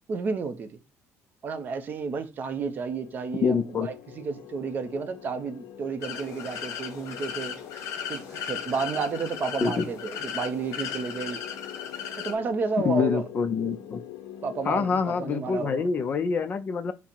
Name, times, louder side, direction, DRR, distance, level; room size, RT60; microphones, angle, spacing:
voice 1, 0.1-0.8 1.4-7.6 8.1-11.4 12.2-13.3 14.4-16.0, right 5 dB, 35° right, 0.5 m, -31 dB
sound 1, 2.7-15.4, left 11 dB, 90° left, 0.5 m, -45 dB
voice 2, 3.4-3.9 9.6-9.9 12.8-14.0 14.7-16.9, left 6 dB, 30° left, 0.4 m, -26 dB
sound 2, 6.0-12.3, left 8 dB, 65° left, 1.2 m, -36 dB
5.8 x 2.0 x 4.4 m
cardioid pair, 175°, 6 cm